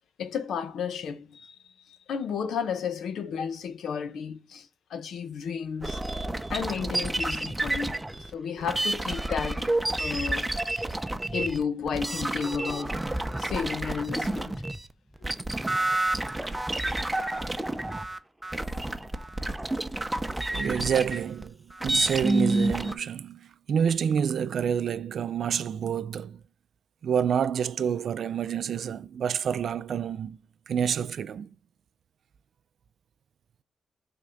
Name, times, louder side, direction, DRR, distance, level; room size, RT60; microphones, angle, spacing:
voice 1, 0.2-1.6 1.9-6.0 6.5-8.0 8.3-9.7 10.0-10.5 11.3-13.1 13.4-14.5, left 6 dB, 80° left, 0.9 m, -32 dB
sound 1, 5.8-14.9 15.2-22.9, right 1 dB, 10° right, 0.6 m, -29 dB
voice 2, 20.5-21.6 21.8-26.4 27.0-30.4 30.7-31.5, right 8 dB, 70° right, 0.4 m, -28 dB
5.6 x 3.6 x 5.2 m
cardioid pair, 95°, 0 cm